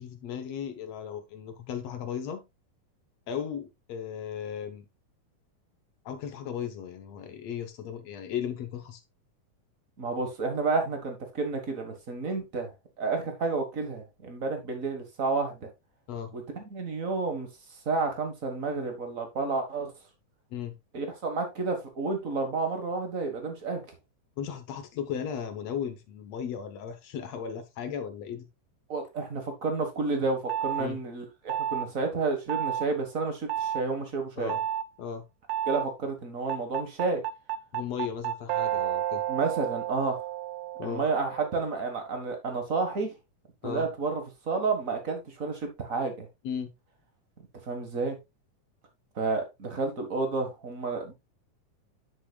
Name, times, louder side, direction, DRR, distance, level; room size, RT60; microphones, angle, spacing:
voice 1, 0.0-2.5 3.3-4.9 6.1-9.0 16.1-16.3 20.5-20.8 24.4-28.5 30.8-31.0 34.4-34.6 35.0-35.2 37.7-39.2 40.8-41.0 43.6-43.9 46.4-46.7, left 8 dB, 65° left, 1.9 m, -36 dB
voice 2, 10.0-12.7 13.0-15.7 16.3-17.5 17.8-19.9 20.9-23.8 28.9-34.5 35.7-37.2 39.3-40.2 40.8-43.1 43.6-46.3 47.6-48.2 49.1-51.1, right 3 dB, 40° right, 1.2 m, -30 dB
sound 1, 30.5-30.8 31.5-31.9 32.5-32.9 33.5-33.8 34.5-34.8 35.5-35.9 36.5-41.6, right 11 dB, 75° right, 1.7 m, -31 dB
9.9 x 7.0 x 2.3 m
omnidirectional pair, 3.7 m